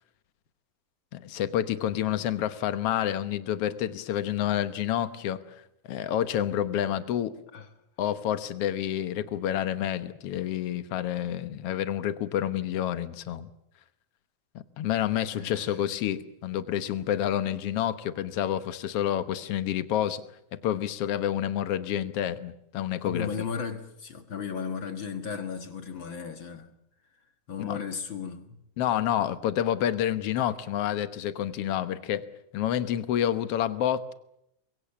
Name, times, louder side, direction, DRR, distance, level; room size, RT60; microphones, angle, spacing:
voice 1, 1.1-5.4 5.9-7.3 8.0-13.5 14.8-20.2 20.5-23.3 27.7-27.8 28.8-32.2 32.5-34.1, left 11 dB, 75° left, 1.4 m, -28 dB
voice 2, 15.3-15.8 23.0-26.7 27.5-28.6, left 6 dB, 50° left, 1.5 m, -35 dB
25.5 x 22.5 x 7.2 m
omnidirectional pair, 4.3 m